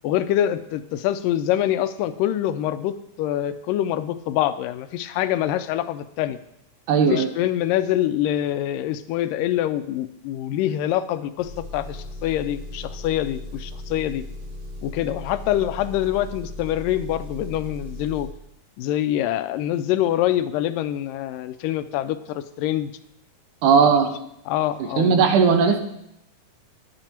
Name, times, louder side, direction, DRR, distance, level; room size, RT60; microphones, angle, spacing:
voice 1, 0.0-6.4 7.1-14.2 14.8-18.3 18.8-22.9 23.8-24.0 24.5-25.3, left 12 dB, 85° left, 12 dB, 2.2 m, -25 dB
voice 2, 6.9-7.3 23.6-24.1 25.0-25.8, right 6 dB, 75° right, 6 dB, 2.4 m, -17 dB
Engine, 11.4-18.3, left 1 dB, 60° right, 3.3 m, -37 dB
10.5 x 9.1 x 4.4 m, 0.77 s
omnidirectional pair, 3.9 m